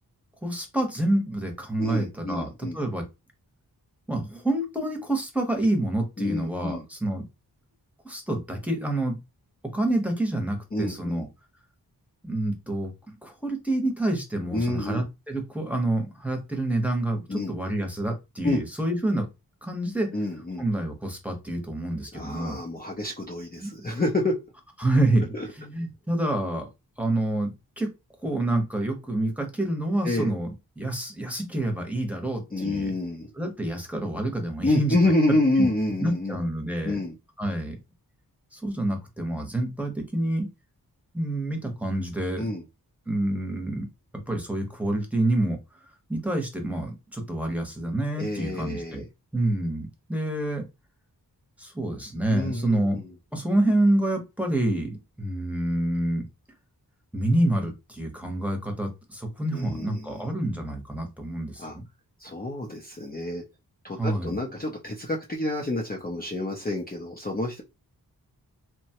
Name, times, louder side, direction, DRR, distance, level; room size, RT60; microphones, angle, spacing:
voice 1, 0.4-3.0 4.1-7.2 8.0-9.2 9.7-11.3 12.2-19.3 19.6-20.1 20.6-22.6 23.6-23.9 24.8-26.7 27.0-27.9 28.2-32.9 33.4-35.0 35.6-35.7 36.0-37.0 37.4-37.8 38.5-40.5 41.1-42.5 43.1-43.9 44.3-45.6 46.1-49.0 49.3-50.6 51.6-53.0 53.3-56.2 57.1-61.8 64.0-64.4, right 1 dB, 5° right, 3 dB, 0.9 m, -27 dB
voice 2, 1.8-2.8 6.2-6.8 10.7-11.2 14.5-15.0 17.3-17.5 18.4-18.6 20.1-20.6 22.1-24.3 25.3-25.5 30.0-30.4 32.5-33.3 34.6-36.4 36.9-37.2 42.4-42.6 48.1-49.0 52.3-53.1 59.5-60.3 61.6-61.8 62.2-63.4 63.8-67.6, left 2 dB, 25° left, -1 dB, 0.6 m, -28 dB
2.9 x 2.2 x 2.8 m, 0.24 s
cardioid pair, 60°, 38 cm